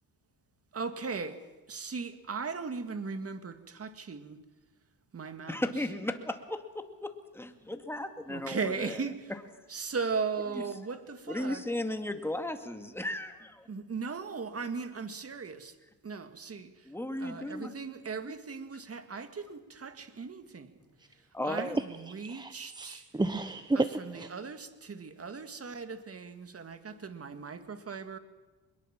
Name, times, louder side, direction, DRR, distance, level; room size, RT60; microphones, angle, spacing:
voice 1, 0.7-1.3 1.7-4.4 5.1-5.6 8.3-9.2 9.7-11.6 13.7-15.7 16.0-16.7 17.2-20.7 21.4-21.8 22.1-23.0 24.1-28.2, right 5 dB, 35° right, 2.1 m, -37 dB
voice 2, 5.5-9.4 10.5-10.6 11.3-13.7 16.9-17.7 18.3-18.4 21.3-21.8, left 1 dB, 5° left, 2.3 m, -36 dB
voice 3, 22.0-24.4, right 2 dB, 10° right, 0.9 m, -32 dB
23.0 x 21.5 x 7.5 m
cardioid pair, 100°, 39 cm